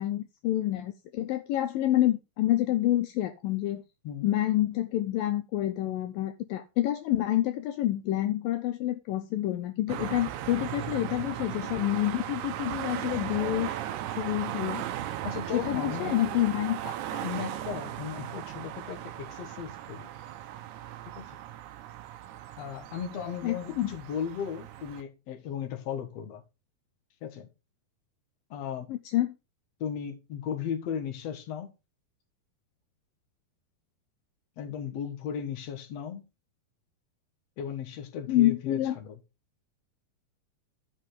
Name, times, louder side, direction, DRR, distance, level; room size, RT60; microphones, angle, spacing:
voice 1, 0.0-3.8 4.2-13.8 14.1-14.9 15.5-16.8 23.4-23.9 28.9-29.3 38.3-39.0, left 14 dB, 75° left, 2.3 m, -28 dB
sound 1, 9.9-25.0, right 12 dB, 70° right, 1.9 m, -37 dB
voice 2, 15.2-16.1 16.8-20.1 21.2-21.4 22.6-26.4 27.2-27.5 28.5-28.9 29.8-31.7 34.6-36.2 37.6-39.2, left 8 dB, 55° left, 2.3 m, -36 dB
13.0 x 5.7 x 4.9 m
omnidirectional pair, 4.4 m